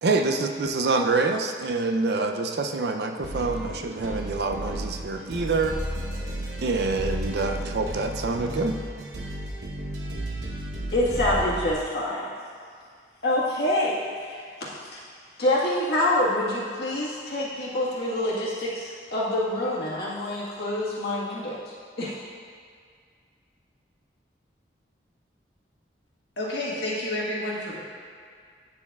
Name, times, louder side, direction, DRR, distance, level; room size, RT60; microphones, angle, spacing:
voice 1, 0.0-5.8 6.6-8.8, right 3 dB, 65° right, 5 dB, 0.4 m, -26 dB
sound 1, 3.2-11.7, right 1 dB, 80° right, 0.9 m, -33 dB
voice 2, 10.9-12.3 13.2-14.4 14.9-15.0 15.4-21.6 22.0-22.1, left 1 dB, 65° left, -6 dB, 1.5 m, -26 dB
voice 3, 26.4-27.8, left 1 dB, 85° left, -5 dB, 1.6 m, -30 dB
9.3 x 6.9 x 2.3 m, 2.1 s
head